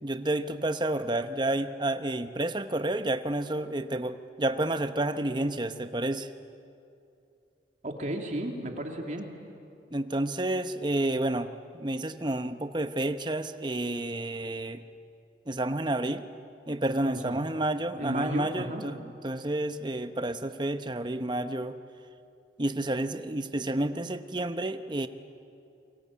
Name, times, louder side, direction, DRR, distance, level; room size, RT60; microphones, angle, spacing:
voice 1, 0.0-6.3 9.9-14.8 15.5-16.2 16.7-19.0 19.2-21.8 22.6-25.1, right 1 dB, 25° right, 10 dB, 0.8 m, -30 dB
voice 2, 7.8-9.3 17.0-17.5 18.0-18.8, right 1 dB, 40° right, 2 dB, 2.7 m, -34 dB
29.5 x 22.5 x 8.6 m, 2.6 s
head